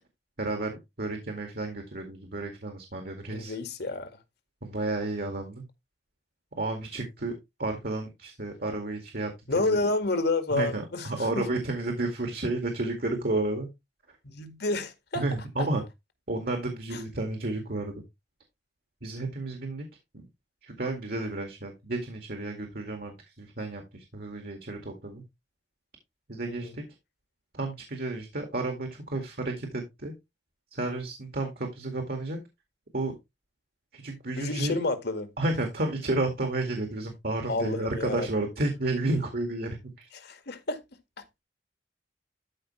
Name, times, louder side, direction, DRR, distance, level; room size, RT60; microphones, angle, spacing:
voice 1, 0.4-3.6 4.6-5.6 6.6-7.3 7.6-9.3 9.6-9.8 10.5-13.7 15.2-15.8 16.3-17.9 19.0-19.9 20.1-20.2 20.6-25.2 26.3-26.8 27.5-30.1 30.7-32.4 32.9-33.2 33.9-34.8 35.4-40.1, right 2 dB, 55° right, 2.1 m, -31 dB
voice 2, 3.3-4.1 9.5-11.4 14.2-15.2 16.9-17.0 26.5-26.8 34.3-35.3 37.5-38.3 40.1-40.8 41.2-41.3, left 2 dB, 65° left, 1.9 m, -30 dB
13.0 x 5.3 x 3.2 m
head